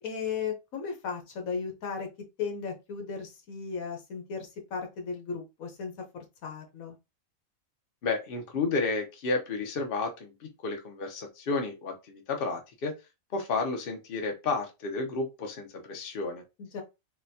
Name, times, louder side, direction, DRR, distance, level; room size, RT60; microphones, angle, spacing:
voice 1, 0.0-2.1 2.4-7.0 16.6-16.8, left 5 dB, 80° left, 1.3 m, -36 dB
voice 2, 8.0-12.9 13.3-16.4, left 3 dB, 50° left, 0.8 m, -31 dB
4.1 x 2.2 x 2.7 m
omnidirectional pair, 1.5 m